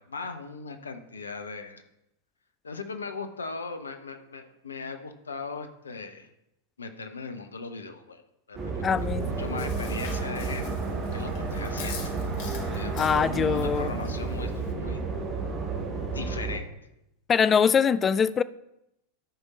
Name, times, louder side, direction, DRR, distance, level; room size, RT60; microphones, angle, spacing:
voice 1, 0.0-1.8 2.6-6.3 6.8-8.2 8.5-8.8 9.1-10.7 11.1-12.0 12.7-14.5 14.8-15.0 16.1-16.7, left 4 dB, 75° left, 0.8 m, -38 dB
sound 1, 8.5-16.6, right 4 dB, 30° right, 1.7 m, -31 dB
voice 2, 8.8-9.3 13.0-13.9 17.3-18.4, left 7 dB, 20° left, 0.3 m, -23 dB
Chewing mastication, 9.0-14.7, left 5 dB, 50° left, 1.3 m, -41 dB
13.0 x 5.3 x 4.1 m
figure-of-eight pair, 90°, 0 cm